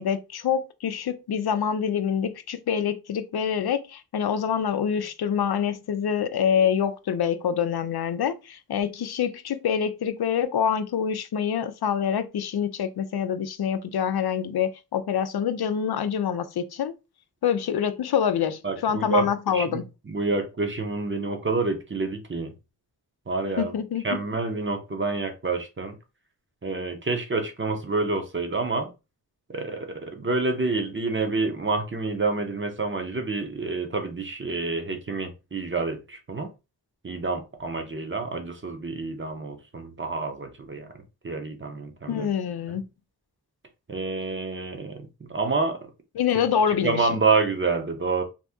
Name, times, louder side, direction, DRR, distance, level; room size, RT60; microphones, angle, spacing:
voice 1, 0.0-16.9 17.4-19.8 23.6-24.0 42.1-42.8 46.2-47.0, left 8 dB, 80° left, 0.5 m, -26 dB
voice 2, 18.6-22.5 23.3-23.8 24.0-25.9 26.6-28.9 29.5-36.5 37.0-40.9 41.2-42.3 42.7-42.8 43.9-45.8 46.7-48.2, right 3 dB, 30° right, 0.7 m, -28 dB
2.8 x 2.6 x 3.5 m
wide cardioid pair, 100°, 38 cm